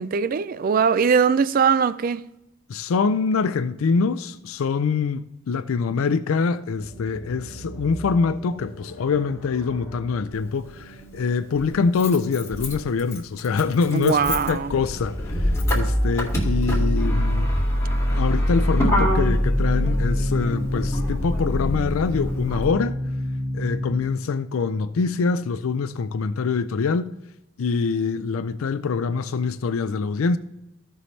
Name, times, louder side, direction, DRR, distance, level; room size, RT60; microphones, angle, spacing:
voice 1, 0.0-2.3 13.9-14.7, right 6 dB, 45° right, 0.3 m, -21 dB
voice 2, 2.7-17.5 18.1-23.0 23.5-27.1 27.6-30.4, left 5 dB, 85° left, 0.4 m, -24 dB
sound 1, 6.8-13.0, right 2 dB, 30° left, 2.3 m, -42 dB
Motor vehicle (road), 10.3-10.4 11.6-22.7, equal, 15° left, 2.4 m, -24 dB
sound 2, 18.8-24.2, left 1 dB, 55° left, 1.3 m, -29 dB
16.0 x 5.6 x 3.2 m
head